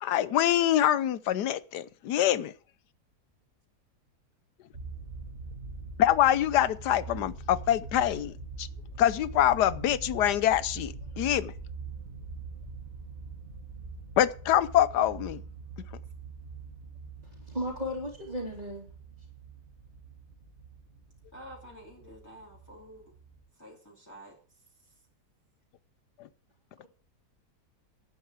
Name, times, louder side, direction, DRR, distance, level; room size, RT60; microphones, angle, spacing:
voice 1, 0.0-2.5 6.0-8.3 8.6-8.7 9.0-11.5 14.2-15.4 26.2-26.3, left 11 dB, 85° left, 1.4 m, -25 dB
sound 1, 4.7-23.4, right 4 dB, 40° right, 2.2 m, -43 dB
voice 2, 17.5-18.9 26.8-26.9, equal, 25° right, 2.8 m, -35 dB
voice 3, 21.3-23.1 23.6-24.4, equal, 10° left, 2.6 m, -49 dB
11.0 x 9.1 x 7.3 m
omnidirectional pair, 1.7 m